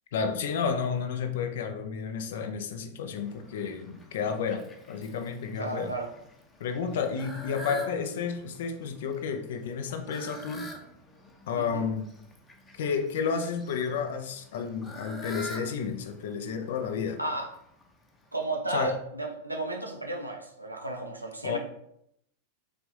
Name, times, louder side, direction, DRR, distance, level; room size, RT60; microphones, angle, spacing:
voice 1, 0.1-5.9 6.6-10.7 11.5-12.1 12.7-17.2 18.7-19.0 21.4-21.6, left 6 dB, 55° left, 7 dB, 0.5 m, -31 dB
Fowl, 3.1-18.5, left 1 dB, 15° left, 0.8 m, -48 dB
voice 2, 5.6-6.1 11.5-11.9 17.2-17.5 18.3-21.6, right 2 dB, 85° right, 2 dB, 0.7 m, -33 dB
4.0 x 3.4 x 3.2 m, 0.74 s
figure-of-eight pair, 90°, 0 cm